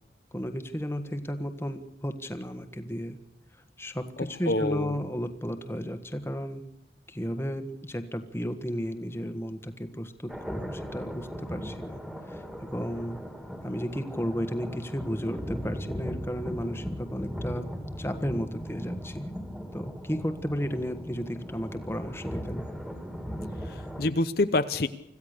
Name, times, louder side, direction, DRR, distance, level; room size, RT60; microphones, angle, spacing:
voice 1, 0.3-3.2 3.8-6.6 7.1-12.0 12.3-13.2 13.6-17.7 18.0-19.3 19.7-22.6, equal, 15° left, 9 dB, 1.5 m, -33 dB
voice 2, 4.2-5.0 23.6-24.9, left 2 dB, 55° left, 10 dB, 0.8 m, -27 dB
sound 1, 10.3-24.1, equal, 5° right, 2.4 m, -38 dB
25.5 x 15.5 x 6.7 m, 0.84 s
head